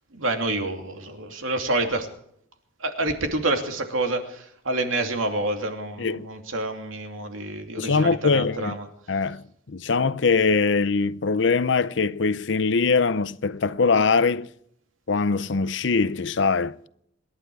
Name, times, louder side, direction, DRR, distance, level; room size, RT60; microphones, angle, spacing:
voice 1, 0.1-2.1 2.8-8.9, right 2 dB, 80° right, 2.7 m, -28 dB
voice 2, 7.8-8.7 9.1-14.5 15.1-16.8, left 4 dB, 60° left, 0.6 m, -22 dB
26.5 x 11.5 x 4.8 m
head